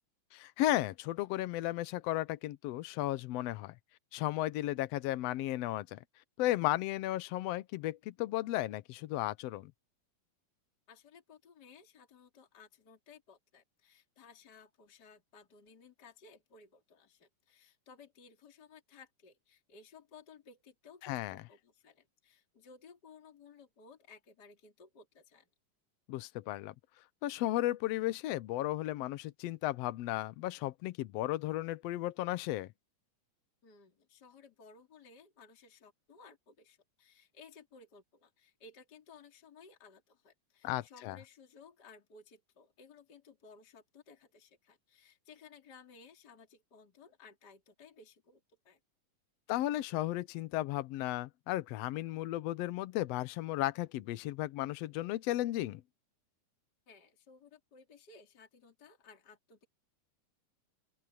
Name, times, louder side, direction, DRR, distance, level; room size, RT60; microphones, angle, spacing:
voice 1, 0.3-3.7 4.1-6.0 6.4-9.7 21.0-21.4 26.1-26.7 27.2-32.7 40.6-41.2 49.5-55.8, left 15 dB, 80° left, 1.5 m, -34 dB
voice 2, 10.9-25.5 33.6-48.8 56.9-59.7, left 5 dB, 30° left, 3.4 m, -58 dB
open air
omnidirectional pair, 3.6 m